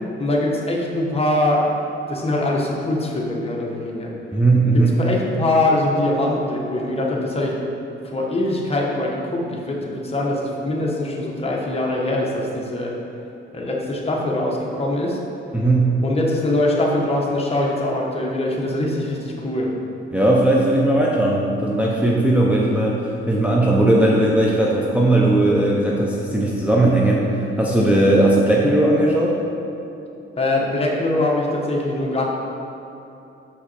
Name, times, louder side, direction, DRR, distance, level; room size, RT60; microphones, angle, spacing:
voice 1, 0.2-1.7 2.1-4.1 4.7-7.6 8.0-12.9 13.5-15.2 16.0-19.7 30.4-32.2, left 1 dB, 30° left, -2 dB, 1.2 m, -22 dB
voice 2, 4.3-5.0 15.5-16.0 20.1-29.4, right 1 dB, 5° right, -4 dB, 0.7 m, -18 dB
6.4 x 6.0 x 4.1 m, 2.9 s
cardioid pair, 110°, 21 cm